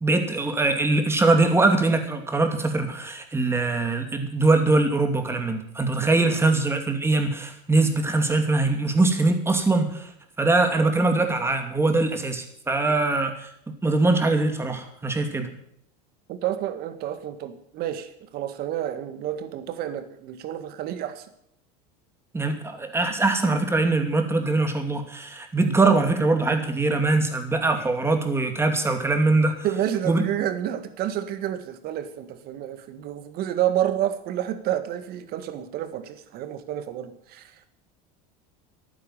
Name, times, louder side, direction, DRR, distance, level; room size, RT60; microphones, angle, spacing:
voice 1, 0.0-10.1 10.4-13.5 13.8-15.5 22.3-29.7 30.1-30.2, right 3 dB, 15° right, 2.5 m, -22 dB
voice 2, 16.3-21.3 29.6-37.7, right 11 dB, 55° right, 1.8 m, -29 dB
12.0 x 9.4 x 9.1 m
supercardioid pair, 105°, 19 cm